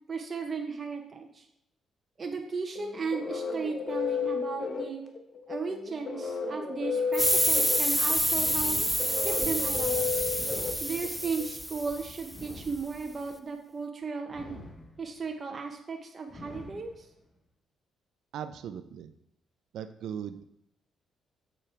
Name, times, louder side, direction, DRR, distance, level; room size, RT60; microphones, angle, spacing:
voice 1, 0.1-1.4 2.2-5.0 5.5-8.8 9.2-10.1 10.8-14.5 15.0-17.1, right 4 dB, 35° right, 2 dB, 0.9 m, -35 dB
sound 1, 2.8-11.5, left 5 dB, 50° left, 1.2 m, -33 dB
sound 2, 7.1-12.4, equal, ahead, 0.3 m, -28 dB
sound 3, 8.3-9.4 10.3-11.4 12.3-13.3 14.3-15.3 16.3-17.3, left 1 dB, 30° left, 1.2 m, -48 dB
voice 2, 18.3-19.1 19.7-20.4, right 8 dB, 75° right, 10 dB, 0.6 m, -38 dB
7.3 x 7.0 x 3.4 m, 0.78 s
cardioid pair, 90°, 0 cm